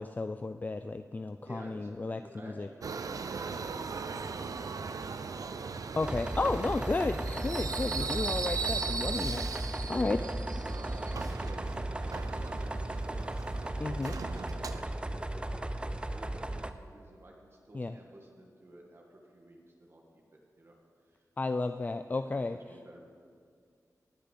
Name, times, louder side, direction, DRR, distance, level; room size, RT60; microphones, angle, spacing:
voice 1, 0.0-2.7 6.0-10.2 13.8-14.2 17.7-17.9 21.4-22.6, left 3 dB, 25° left, 10 dB, 0.4 m, -33 dB
voice 2, 1.4-5.8 6.5-6.9 7.3-7.4 8.2-8.4 9.8-10.3 10.6-12.5 12.8-15.7 16.1-20.8 21.0-21.2 22.3-23.1, right 1 dB, 40° right, 0 dB, 1.9 m, -53 dB
Subway metro underground, 2.8-14.8, right 5 dB, 65° right, 0.6 m, -38 dB
sound 1, 6.0-16.7, right 1 dB, 15° right, 0.6 m, -36 dB
19.5 x 6.7 x 7.6 m, 2.2 s
wide cardioid pair, 95°, 6 cm